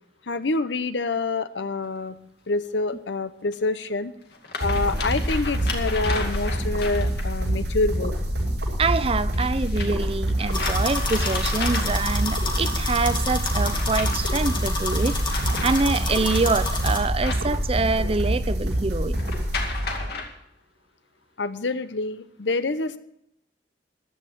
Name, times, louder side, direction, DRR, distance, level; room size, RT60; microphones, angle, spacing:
voice 1, 0.3-2.1 2.5-4.1 4.6-8.2 21.4-23.0, left 3 dB, 85° left, 0.8 m, -26 dB
sound 1, 1.8-1.9 3.5-3.6 4.2-7.4 9.3-12.2 13.3-14.5 15.0-18.1 19.1-20.2, left 4 dB, 65° left, 2.3 m, -34 dB
sound 2, 4.6-20.1, right 1 dB, 75° right, 6.9 m, -26 dB
voice 2, 8.8-19.3, right 3 dB, 35° right, 0.6 m, -25 dB
sound 3, 10.5-17.0, left 2 dB, 25° left, 2.3 m, -30 dB
15.0 x 11.0 x 4.6 m
head